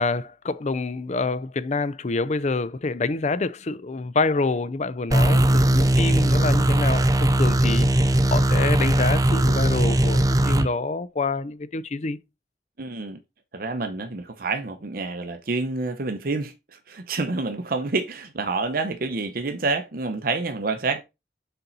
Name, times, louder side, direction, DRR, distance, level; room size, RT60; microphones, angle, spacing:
voice 1, 0.0-12.2, left 3 dB, 40° left, 0.5 m, -27 dB
sound 1, 5.1-10.7, right 1 dB, 20° right, 0.5 m, -19 dB
voice 2, 12.8-13.2 13.5-21.0, right 3 dB, 55° right, 0.8 m, -28 dB
6.7 x 4.3 x 4.0 m
head